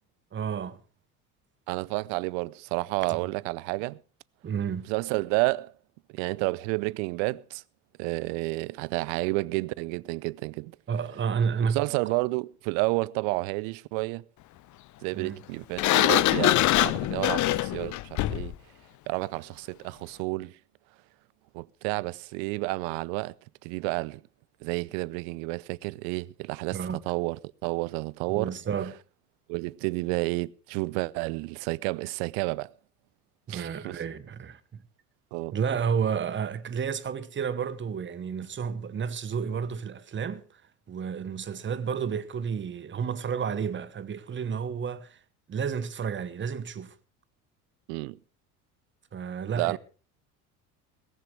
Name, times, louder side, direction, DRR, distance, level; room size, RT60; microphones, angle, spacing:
voice 1, 0.3-0.8 3.1-3.2 4.4-4.9 10.9-11.8 15.1-15.4 26.7-27.0 28.3-29.0 33.5-34.8 35.5-40.4 40.9-45.2 45.5-46.9 49.1-49.8, right 6 dB, 25° right, 1.2 m, -31 dB
voice 2, 1.7-4.0 4.9-5.7 6.1-7.6 8.0-10.8 11.6-14.2 15.0-18.5 19.1-20.6 21.5-23.3 23.6-24.2 24.6-26.8 27.1-28.6 29.5-32.7 33.5-34.0 35.3-35.6 47.9-48.2 49.5-49.8, right 24 dB, 60° right, 0.6 m, -30 dB
Sliding door, 15.8-18.5, left 16 dB, 40° left, 0.7 m, -23 dB
18.0 x 16.0 x 3.3 m
hypercardioid pair, 70°, 45 cm